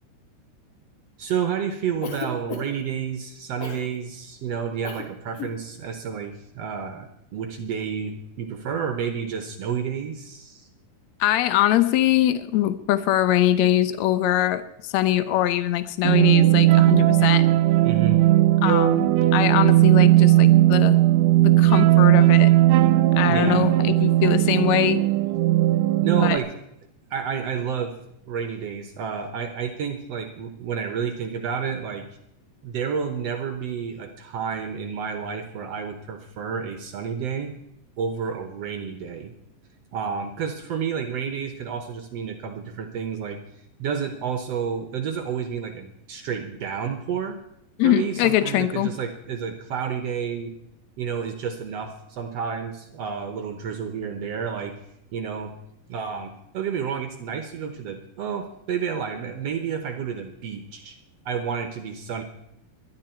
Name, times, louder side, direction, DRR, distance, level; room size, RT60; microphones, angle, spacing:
voice 1, 1.2-10.7 17.8-18.3 23.3-23.6 26.0-26.6 27.1-28.0 28.3-32.1 32.6-37.6 38.0-39.3 39.9-43.4 43.8-47.4 47.8-50.6 51.0-54.7 55.1-55.6 55.9-61.0 61.3-62.2, right 7 dB, 65° right, 7 dB, 1.7 m, -30 dB
Cough, 2.0-2.9 3.6-3.9 4.8-5.1 5.3-5.6, left 5 dB, 55° left, 2.5 m, -34 dB
voice 2, 11.2-17.4 18.6-21.0 21.4-22.5 23.2-25.0 26.2-26.4 47.8-48.9, left 13 dB, 70° left, 13 dB, 1.9 m, -22 dB
sound 1, 16.0-26.4, right 15 dB, 80° right, 2.2 m, -17 dB
20.0 x 12.0 x 4.5 m, 0.81 s
omnidirectional pair, 3.9 m